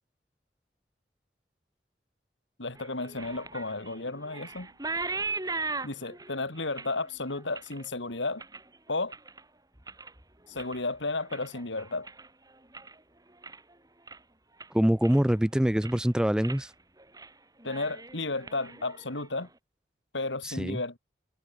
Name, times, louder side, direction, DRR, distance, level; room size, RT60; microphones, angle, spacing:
voice 1, 2.6-4.7 5.8-8.4 8.9-9.1 10.5-12.1 17.6-19.5 20.1-21.0, left 3 dB, 90° left, 3.4 m, -33 dB
sound 1, 2.8-9.4 9.8-10.2 10.5-13.0 13.3-13.7 14.1-14.2 14.6-15.4 15.7-16.1 16.4-16.6 17.0-17.3 17.6-19.5, right 3 dB, 20° right, 4.1 m, -39 dB
voice 2, 14.7-16.7 20.4-20.8, equal, 5° right, 0.3 m, -24 dB
head